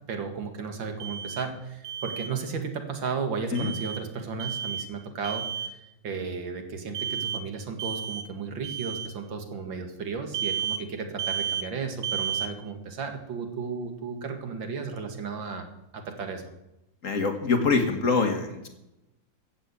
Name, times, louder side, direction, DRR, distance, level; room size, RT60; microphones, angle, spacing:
voice 1, 0.1-15.7 15.9-16.5, right 5 dB, 85° right, 5 dB, 2.5 m, -34 dB
Alarm, 1.0-1.5 1.8-2.3 3.6-4.0 4.4-4.9 5.2-5.7 6.9-7.4 7.8-8.3 8.6-9.1 10.3-10.8 11.2-11.7 12.0-12.5, right 8 dB, 60° right, 1.5 m, -32 dB
voice 2, 17.0-18.7, left 4 dB, 45° left, 6 dB, 1.8 m, -24 dB
14.5 x 7.4 x 8.4 m, 0.91 s
omnidirectional pair, 2.0 m